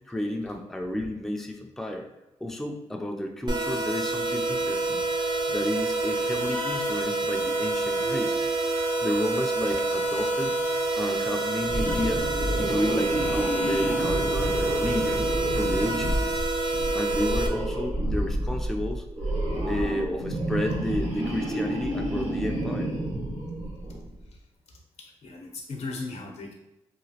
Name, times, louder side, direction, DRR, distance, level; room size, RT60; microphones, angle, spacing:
voice 1, 0.1-2.0 2.4-8.7 9.0-10.5 11.0-12.3 12.6-15.3 15.5-16.4 16.9-19.0 19.6-22.9, left 1 dB, 5° left, 2 dB, 0.4 m, -32 dB
sound 1, 3.5-17.5, right 2 dB, 45° right, 0.6 m, -27 dB
sound 2, 11.6-24.1, right 1 dB, 80° right, 1.1 m, -29 dB
voice 2, 25.0-26.5, left 3 dB, 75° left, 1 dB, 0.7 m, -37 dB
2.9 x 2.4 x 2.8 m, 0.97 s
cardioid pair, 80°, 11 cm